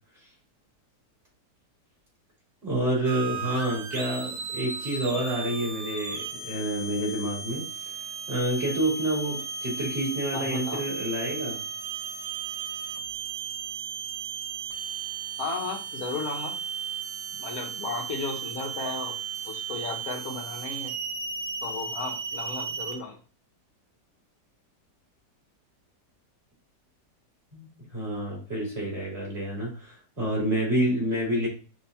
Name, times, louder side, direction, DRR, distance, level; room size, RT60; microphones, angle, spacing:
voice 1, 2.6-8.0 8.3-11.6 27.5-31.5, right 1 dB, 35° right, -4 dB, 3.1 m, -28 dB
sound 1, 3.0-22.9, right 5 dB, 60° right, 0.8 m, -35 dB
voice 2, 10.3-10.8 15.4-16.6 17.4-19.2 19.4-20.9 21.6-23.2, left 3 dB, 60° left, 2 dB, 1.3 m, -34 dB
6.2 x 2.8 x 2.7 m, 0.34 s
omnidirectional pair, 1.8 m